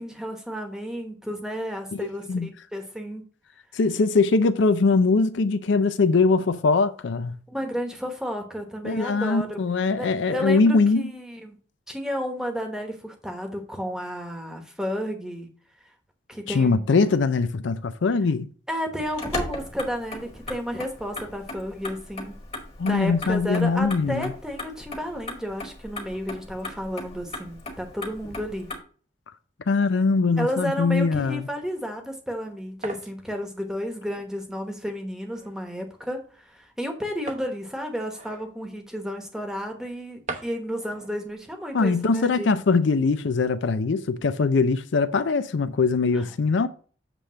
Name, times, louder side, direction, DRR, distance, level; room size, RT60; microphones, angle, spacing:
voice 1, 0.0-3.2 7.5-9.6 10.0-11.6 11.9-15.5 16.3-16.8 18.7-22.3 22.8-28.7 30.4-42.6 46.1-46.3, equal, 5° right, 1.1 m, -32 dB
voice 2, 1.9-2.5 3.7-7.4 8.8-11.1 16.5-18.5 22.8-24.3 29.7-31.4 41.7-46.7, left 4 dB, 70° left, 0.5 m, -22 dB
Motor vehicle (road), 19.0-28.8, left 2 dB, 30° left, 1.5 m, -38 dB
sound 1, 31.9-42.4, right 3 dB, 35° right, 0.8 m, -45 dB
7.4 x 3.4 x 6.3 m
head